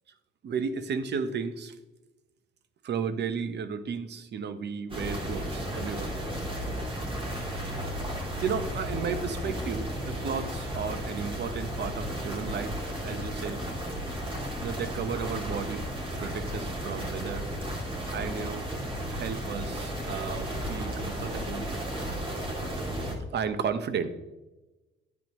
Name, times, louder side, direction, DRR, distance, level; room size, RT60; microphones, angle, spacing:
voice 1, 0.4-1.8 2.8-6.2 7.4-7.8 8.4-13.7 14.6-17.5 18.1-18.7 19.1-22.6 22.9-24.1, right 6 dB, 60° right, 11 dB, 0.9 m, -34 dB
sound 1, 4.9-23.1, equal, 25° right, 2.7 m, -34 dB
10.5 x 8.3 x 3.1 m, 1.1 s
cardioid pair, 90°, 20 cm